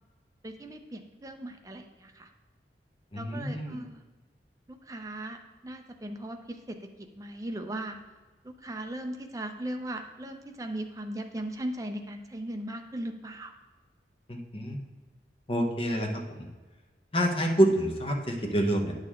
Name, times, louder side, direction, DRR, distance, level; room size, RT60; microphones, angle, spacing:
voice 1, 0.4-2.3 3.2-4.0 4.7-5.4 5.6-6.8 7.2-8.0 8.4-13.5, right 1 dB, 20° right, 5 dB, 0.6 m, -38 dB
voice 2, 3.1-3.8 14.3-14.8 15.5-16.1 16.3-16.5 17.1-18.9, right 1 dB, 30° left, 2 dB, 1.0 m, -27 dB
9.6 x 6.4 x 3.6 m, 1.3 s
head